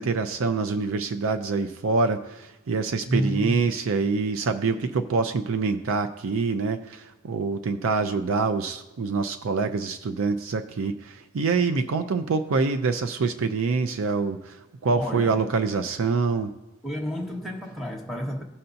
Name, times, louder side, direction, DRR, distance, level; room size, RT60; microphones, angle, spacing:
voice 1, 0.0-16.5, right 4 dB, 80° right, 8 dB, 0.5 m, -25 dB
voice 2, 3.0-3.7 14.9-15.4 16.8-18.4, equal, ahead, -2 dB, 0.9 m, -30 dB
16.5 x 5.6 x 2.6 m, 0.97 s
head